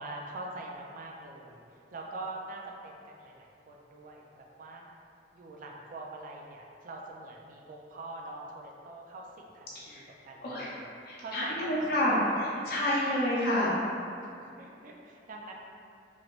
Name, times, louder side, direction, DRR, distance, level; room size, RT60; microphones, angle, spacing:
voice 1, 0.0-4.8 5.3-10.9 11.2-12.4 14.2-15.5, right 2 dB, 50° right, -1 dB, 0.4 m, -44 dB
voice 2, 11.1-13.8, left 1 dB, 60° left, -8 dB, 0.7 m, -29 dB
3.1 x 3.0 x 2.5 m, 2.6 s
head